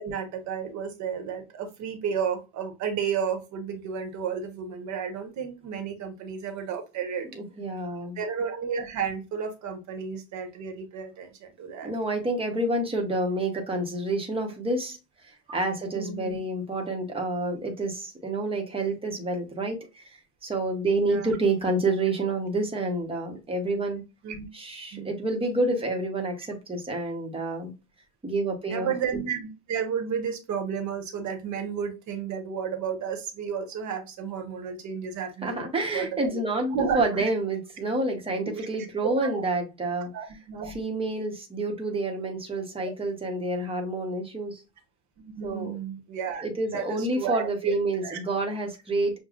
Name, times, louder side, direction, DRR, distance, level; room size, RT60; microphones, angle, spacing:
voice 1, 0.0-7.3 8.2-11.9 15.9-16.4 21.0-21.3 24.2-24.5 24.9-25.1 28.7-35.7 35.9-36.4 36.7-37.3 38.5-38.7 39.0-39.4 40.1-40.8 45.2-47.7 48.0-48.2, right 7 dB, 40° right, 1.1 m, -32 dB
voice 2, 7.3-8.2 11.8-24.1 24.5-27.7 28.2-28.9 35.4-40.1 40.7-44.6 45.4-45.8 46.4-49.2, right 2 dB, 10° right, 1.0 m, -28 dB
6.8 x 2.3 x 2.4 m
cardioid pair, 145°, 45 cm